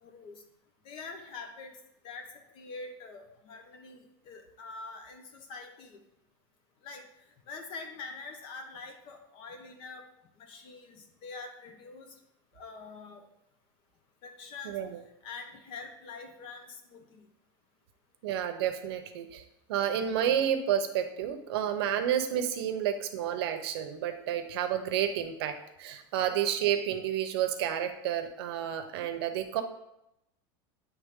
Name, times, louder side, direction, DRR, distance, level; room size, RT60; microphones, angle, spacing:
voice 1, 0.0-0.4 0.8-1.7 2.0-6.0 6.8-7.1 7.5-10.1 10.4-12.1 12.5-13.2 14.2-14.8 15.2-17.3, left 4 dB, 40° left, 5 dB, 0.9 m, -45 dB
voice 2, 14.6-15.0 18.2-19.4 19.7-29.6, right 9 dB, 80° right, 7 dB, 0.8 m, -30 dB
9.3 x 3.5 x 3.7 m, 0.85 s
supercardioid pair, 160°, 13 cm